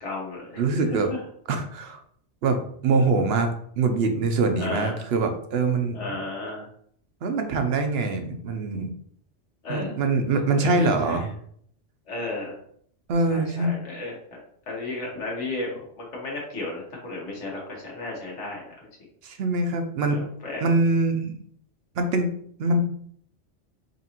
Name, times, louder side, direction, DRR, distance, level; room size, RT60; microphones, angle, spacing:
voice 1, 0.0-0.8 1.1-1.2 4.6-4.9 5.9-6.7 9.6-9.9 10.5-11.3 12.1-12.5 13.3-14.4 14.7-18.7 20.1-20.6, left 2 dB, 75° left, -3 dB, 1.5 m, -33 dB
voice 2, 0.6-1.1 1.5-2.0 2.4-3.5 3.8-6.0 7.2-8.9 9.7-11.3 13.1-13.7 19.2-20.2 20.6-21.3 22.0-22.3 22.6-22.8, right 3 dB, 65° right, 6 dB, 0.8 m, -23 dB
5.3 x 2.5 x 2.8 m, 0.64 s
omnidirectional pair, 1.2 m